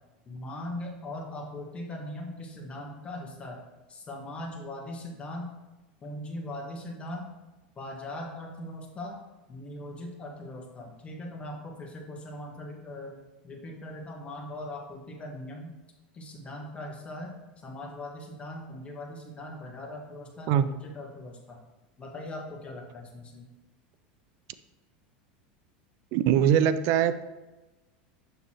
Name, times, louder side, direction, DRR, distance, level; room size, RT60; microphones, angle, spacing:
voice 1, 0.2-3.6 3.9-5.5 6.0-7.3 7.7-9.2 9.5-13.2 13.4-15.7 16.1-17.3 17.6-21.6 22.0-23.4, left 1 dB, 25° left, 0 dB, 1.5 m, -40 dB
voice 2, 26.1-27.3, right 9 dB, 55° right, 13 dB, 0.4 m, -22 dB
6.7 x 6.1 x 3.0 m, 1.1 s
hypercardioid pair, 110°, 5 cm